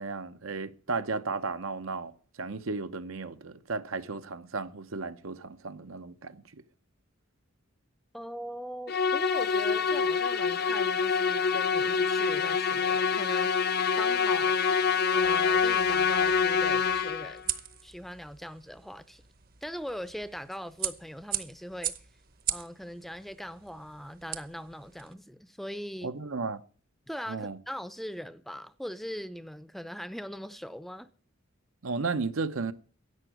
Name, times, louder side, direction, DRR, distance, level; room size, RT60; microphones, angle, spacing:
voice 1, 0.0-2.1 2.4-6.4 26.0-26.6 27.3-27.6 31.8-32.7, right 4 dB, 80° right, 0.8 m, -34 dB
voice 2, 8.1-14.6 15.1-17.4 17.8-19.2 19.6-21.9 22.5-26.1 27.1-31.1, equal, ahead, 0.5 m, -41 dB
Musical instrument, 8.9-17.4, left 6 dB, 50° left, 0.6 m, -26 dB
sound 1, 15.2-25.1, right 11 dB, 45° right, 0.9 m, -40 dB
11.0 x 7.9 x 9.0 m
head